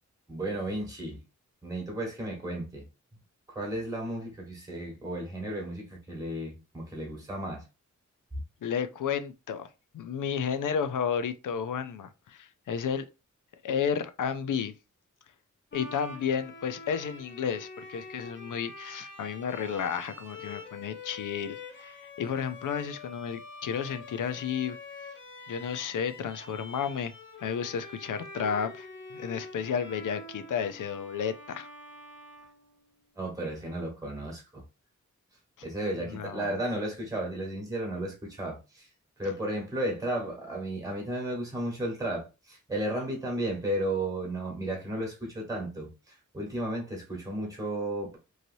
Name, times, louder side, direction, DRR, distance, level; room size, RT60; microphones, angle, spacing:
voice 1, 0.3-1.2 1.6-2.8 3.5-7.6 33.2-34.6 35.6-38.9 39.2-48.2, right 1 dB, 10° right, 1.3 m, -34 dB
voice 2, 8.6-13.1 13.6-14.7 15.7-24.8 25.5-27.1 27.4-31.7 36.0-36.5, left 7 dB, 80° left, 0.5 m, -32 dB
Bowed string instrument, 15.7-33.1, left 3 dB, 40° left, 0.8 m, -46 dB
3.1 x 2.7 x 2.6 m
wide cardioid pair, 115°, 31 cm